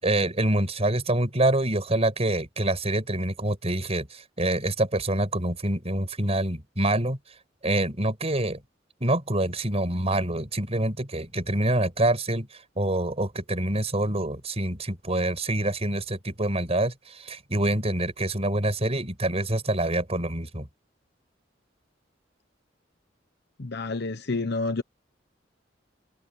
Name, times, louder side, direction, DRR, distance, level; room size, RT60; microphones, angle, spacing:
voice 1, 0.0-7.2 7.6-8.6 9.0-20.7, right 1 dB, 35° right, 5.4 m, -26 dB
voice 2, 23.6-24.8, left 3 dB, 60° left, 1.1 m, -29 dB
open air
head